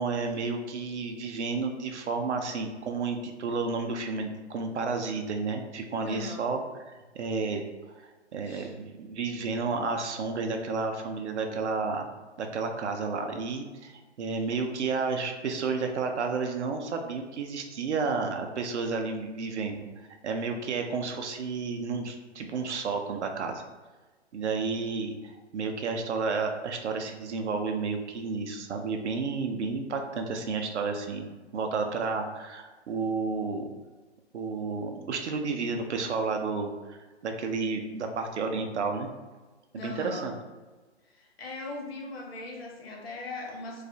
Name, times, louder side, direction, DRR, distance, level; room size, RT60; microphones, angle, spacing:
voice 1, 0.0-6.6 7.1-7.6 8.3-12.1 12.4-19.8 20.2-23.6 24.3-31.2 31.5-33.7 34.3-37.0 37.2-39.1 39.7-40.3, right 4 dB, 75° right, 4 dB, 0.5 m, -31 dB
voice 2, 6.0-6.5 8.4-8.7 39.7-40.3 41.0-43.8, left 3 dB, 60° left, 0 dB, 0.7 m, -39 dB
2.3 x 2.0 x 2.6 m, 1.2 s
figure-of-eight pair, 135°, 35 cm